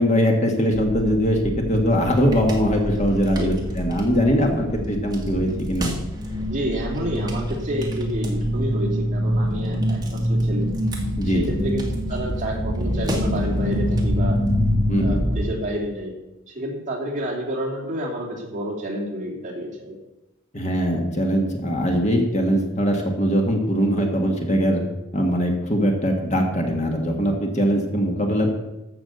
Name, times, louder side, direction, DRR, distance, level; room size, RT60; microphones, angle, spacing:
voice 1, 0.0-1.4 1.7-5.9 11.2-11.6 14.9-15.2 20.5-24.8 25.1-28.5, equal, 35° left, 2 dB, 1.7 m, -21 dB
sound 1, 0.7-15.5, equal, 20° right, 1.8 m, -25 dB
voice 2, 6.5-10.7 11.2-14.4 15.0-16.1 16.5-20.0, equal, 35° right, -2 dB, 2.8 m, -29 dB
14.5 x 5.9 x 6.9 m, 0.96 s
head